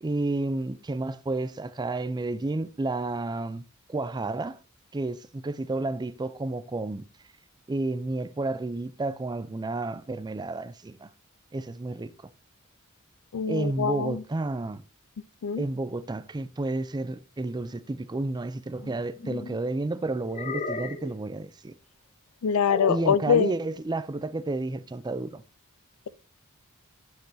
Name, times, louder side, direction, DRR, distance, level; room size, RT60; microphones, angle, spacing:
voice 1, 0.0-4.6 4.9-7.1 7.7-11.1 11.5-12.1 13.5-14.8 15.6-21.8 22.9-25.4, right 2 dB, 20° right, 0.4 m, -31 dB
voice 2, 13.3-14.2 15.4-15.6 22.4-23.5, left 7 dB, 75° left, 0.4 m, -24 dB
sound 1, 18.8-19.6 20.3-21.2 22.7-23.2, left 3 dB, 35° left, 0.7 m, -34 dB
9.4 x 6.8 x 2.7 m
head